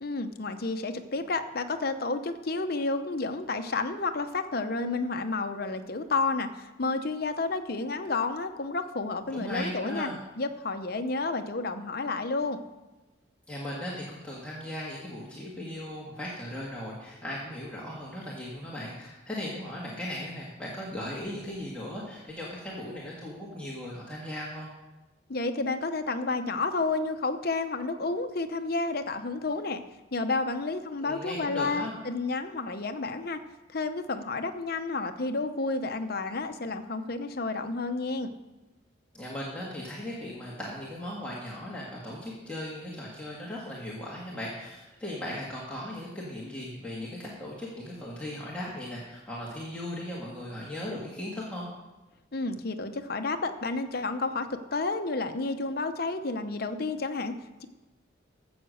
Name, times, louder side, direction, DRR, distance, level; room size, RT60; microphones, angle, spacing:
voice 1, 0.0-10.1 10.4-12.6 25.3-29.8 30.1-33.4 33.7-38.3 52.3-57.6, left 3 dB, 50° left, 8 dB, 0.8 m, -31 dB
voice 2, 9.3-10.2 13.5-24.7 31.0-32.0 39.1-51.7, left 1 dB, 5° left, -6 dB, 1.8 m, -37 dB
13.0 x 8.0 x 6.4 m, 1.1 s
head